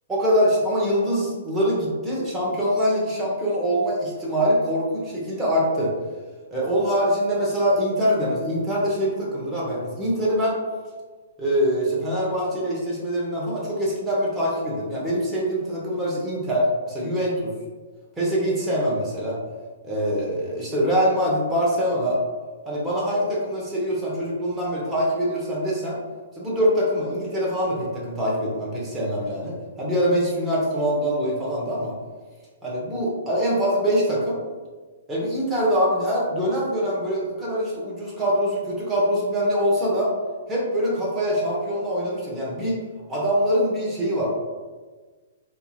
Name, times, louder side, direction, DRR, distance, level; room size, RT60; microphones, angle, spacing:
voice 1, 0.1-5.9 6.5-10.6 11.4-17.5 18.2-19.4 19.8-22.2 22.7-26.0 26.4-31.9 32.6-34.4 35.1-40.1 40.5-42.8 43.1-44.3, equal, 10° right, -6 dB, 0.8 m, -24 dB
2.9 x 2.4 x 2.4 m, 1.4 s
figure-of-eight pair, 115°, 0 cm